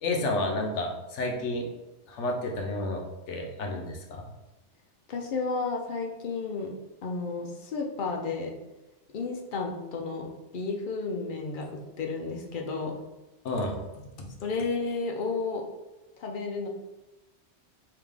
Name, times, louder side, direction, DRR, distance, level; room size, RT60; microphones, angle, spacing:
voice 1, 0.0-1.7 2.1-3.0 3.3-4.2 13.4-13.8, left 2 dB, 80° left, 1 dB, 1.0 m, -30 dB
voice 2, 5.1-8.5 9.1-12.9 14.4-15.6 16.2-16.7, left 4 dB, 55° left, 1 dB, 0.6 m, -32 dB
3.4 x 2.8 x 3.5 m, 1.0 s
omnidirectional pair, 1.2 m